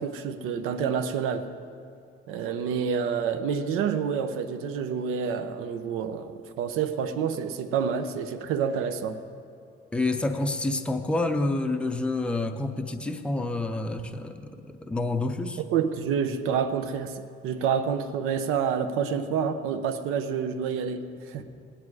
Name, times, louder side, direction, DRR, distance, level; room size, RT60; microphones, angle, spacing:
voice 1, 0.0-1.5 2.3-9.2 15.6-21.4, right 7 dB, 85° right, 9 dB, 0.8 m, -28 dB
voice 2, 9.9-15.6, left 2 dB, 5° left, 6 dB, 0.5 m, -28 dB
18.0 x 9.9 x 4.8 m, 2.4 s
cardioid pair, 175°, 21 cm